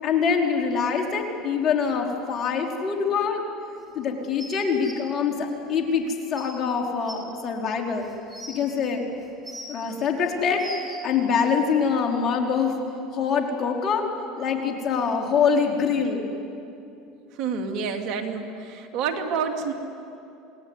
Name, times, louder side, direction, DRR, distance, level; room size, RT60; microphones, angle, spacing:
voice 1, 0.0-3.4 3.9-8.1 8.5-9.1 9.7-12.8 13.1-14.0 14.4-16.3, left 6 dB, 45° left, 1 dB, 4.4 m, -24 dB
sound 1, 4.4-4.9 6.0-6.1 6.4-6.5 7.1-7.2 8.0-8.6 9.2-9.8 10.3-11.0 12.0-12.1, equal, 5° right, 6.2 m, -40 dB
voice 2, 17.4-19.7, right 6 dB, 60° right, 4 dB, 3.0 m, -28 dB
28.0 x 18.5 x 9.8 m, 2.7 s
supercardioid pair, 95°, 0 cm